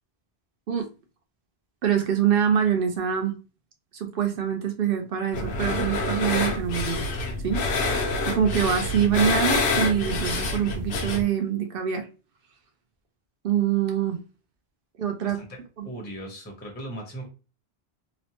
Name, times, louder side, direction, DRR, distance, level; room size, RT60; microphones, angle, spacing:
voice 1, 1.8-3.3 3.9-7.1 7.4-7.6 8.3-12.1 13.4-14.2 15.0-15.4 15.8-15.9, right 8 dB, 65° right, 0.8 m, -25 dB
sound 1, 5.3-11.2, left 3 dB, 80° left, 0.9 m, -27 dB
voice 2, 15.2-15.6 15.8-17.3, right 1 dB, 10° left, 0.6 m, -38 dB
3.0 x 2.1 x 2.7 m
omnidirectional pair, 1.1 m